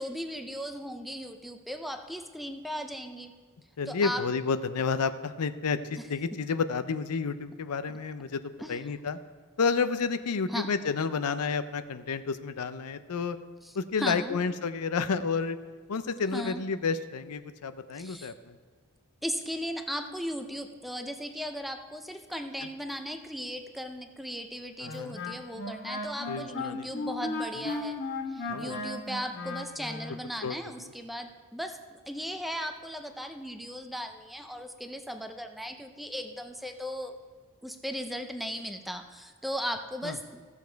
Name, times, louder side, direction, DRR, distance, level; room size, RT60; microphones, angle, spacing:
voice 1, 0.0-3.3 3.9-4.2 8.6-8.9 10.5-10.7 13.6-14.4 16.3-16.6 17.9-18.3 19.2-28.0 28.3-37.1 37.6-40.5, equal, ahead, 6 dB, 0.6 m, -37 dB
voice 2, 3.8-8.4 8.7-9.2 9.6-13.4 13.7-15.6 15.9-18.6 24.8-25.2 26.3-26.9 27.6-27.7 28.5-28.8 30.4-30.6 40.0-40.2, left 5 dB, 85° left, 12 dB, 0.6 m, -30 dB
Wind instrument woodwind instrument, 24.8-30.2, left 2 dB, 50° left, 1.7 m, -35 dB
15.0 x 7.2 x 4.6 m, 1.5 s
head